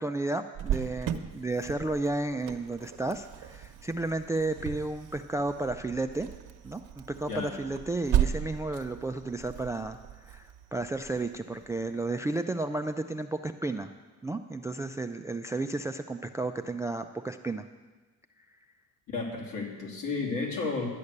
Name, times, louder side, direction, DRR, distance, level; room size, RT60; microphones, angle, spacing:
voice 1, 0.0-6.3 6.6-13.9 14.2-17.7, right 2 dB, 10° right, 9 dB, 0.3 m, -32 dB
Cricket, 0.5-12.0, right 10 dB, 60° right, 1.0 m, -36 dB
voice 2, 19.1-20.9, left 4 dB, 60° left, -1 dB, 3.1 m, -32 dB
12.0 x 8.4 x 6.7 m, 1.3 s
cardioid pair, 105°, 36 cm